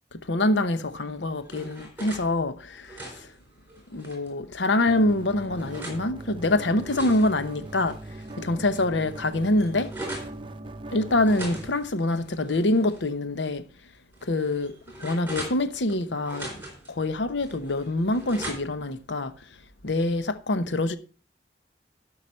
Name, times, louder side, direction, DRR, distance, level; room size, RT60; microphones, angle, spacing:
voice 1, 0.2-3.3 3.9-8.0 8.4-9.9 10.9-13.6 14.2-14.7 15.0-16.5 16.9-19.3 19.8-21.0, left 2 dB, 90° left, 0.9 m, -25 dB
sound 1, 1.0-2.3 2.7-4.3 4.9-6.0 6.6-8.4 8.7-8.8 9.1-10.4 11.2-13.1 13.4-13.5 14.1-16.0 16.2-16.9 17.4-18.9, right 1 dB, 10° right, 4.0 m, -41 dB
sound 2, 4.9-11.7, right 2 dB, 30° right, 0.7 m, -40 dB
12.0 x 5.9 x 5.4 m
head